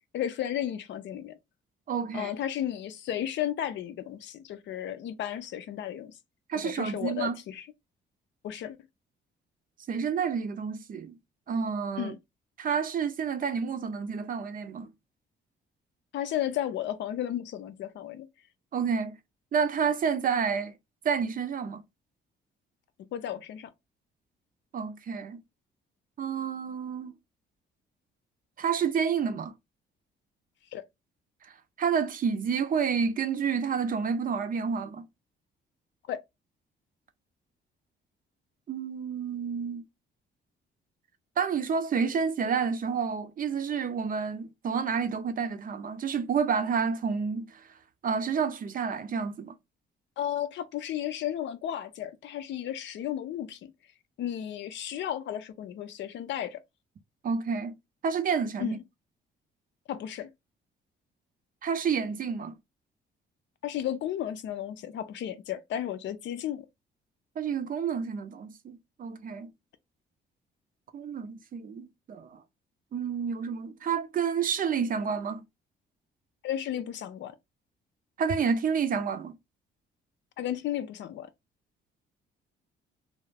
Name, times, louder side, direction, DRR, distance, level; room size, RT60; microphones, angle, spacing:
voice 1, 0.1-1.4 2.1-6.1 6.6-7.6 8.4-8.8 12.0-12.2 16.1-18.3 23.1-23.7 30.7-30.8 36.1-36.2 50.2-53.7 54.2-56.6 58.6-58.8 59.9-60.3 63.6-66.7 76.4-77.3 80.4-81.3, left 11 dB, 65° left, 0.5 m, -33 dB
voice 2, 1.9-2.3 6.5-7.4 9.9-11.2 11.5-12.1 12.6-14.9 18.7-19.2 19.5-20.7 21.0-21.8 24.7-25.4 26.2-27.1 28.6-29.5 31.8-35.1 38.7-39.8 41.4-47.7 48.0-49.5 57.2-57.8 58.0-58.8 61.6-62.5 67.4-69.5 70.9-72.4 72.9-75.4 78.2-79.3, right 6 dB, 45° right, 0.5 m, -29 dB
2.4 x 2.0 x 3.2 m
cardioid pair, 90°, 20 cm